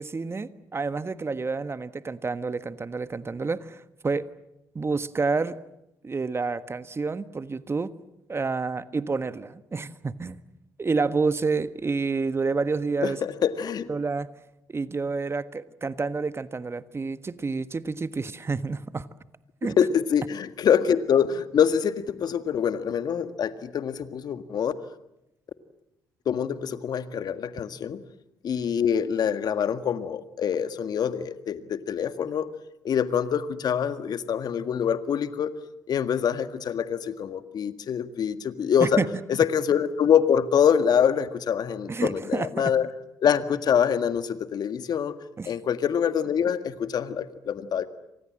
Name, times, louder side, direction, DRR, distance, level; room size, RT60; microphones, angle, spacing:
voice 1, 0.0-4.3 4.7-5.6 6.0-7.9 8.3-10.4 10.8-13.2 13.9-14.3 14.7-19.1 19.6-19.8 38.8-39.1 39.3-39.4 41.9-42.7 45.4-45.5, right 4 dB, 30° right, 13 dB, 1.4 m, -29 dB
voice 2, 13.0-13.9 19.8-24.8 26.2-28.0 28.4-32.5 32.8-35.5 35.9-39.0 39.3-42.9 43.2-45.1 45.4-47.9, left 8 dB, 55° left, 11 dB, 1.8 m, -25 dB
28.5 x 26.0 x 7.6 m, 0.86 s
hypercardioid pair, 45°, 8 cm